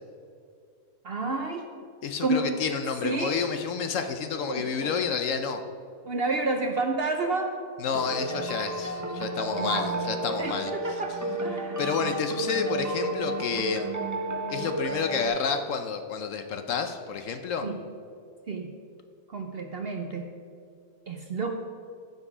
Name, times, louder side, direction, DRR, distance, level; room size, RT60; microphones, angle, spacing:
voice 1, 1.0-1.6 2.2-2.5 3.0-3.4 4.5-4.9 6.0-7.5 9.6-9.9 10.4-11.8 17.6-17.8 18.5-18.7 19.3-20.3 21.1-21.5, right 3 dB, 55° right, 4 dB, 0.7 m, -30 dB
voice 2, 2.0-5.6 7.8-11.0 11.8-13.9 14.5-17.7, left 6 dB, 65° left, 7 dB, 0.9 m, -30 dB
sound 1, 7.9-15.3, right 2 dB, 20° right, 0.5 m, -32 dB
15.0 x 5.4 x 4.9 m, 2.4 s
omnidirectional pair, 1.6 m